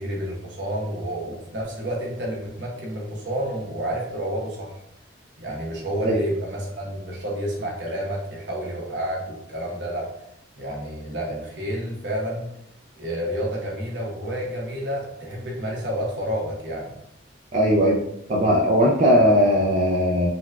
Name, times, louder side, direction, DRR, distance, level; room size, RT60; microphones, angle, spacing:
voice 1, 0.0-4.8 5.4-10.1 10.6-12.5 13.0-16.9, equal, 70° right, -3 dB, 0.9 m, -30 dB
voice 2, 17.5-18.0 18.3-20.3, equal, 40° right, -3 dB, 0.4 m, -18 dB
3.9 x 2.2 x 2.2 m, 0.77 s
head